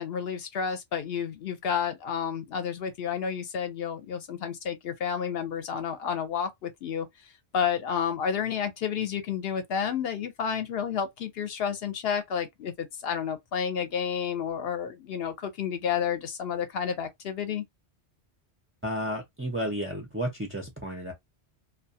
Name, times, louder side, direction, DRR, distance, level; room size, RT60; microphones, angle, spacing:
voice 1, 0.0-7.1 7.5-17.6, left 7 dB, 65° left, 0.7 m, -30 dB
voice 2, 18.8-21.1, equal, 20° right, 0.4 m, -32 dB
2.2 x 2.2 x 2.6 m
omnidirectional pair, 1.1 m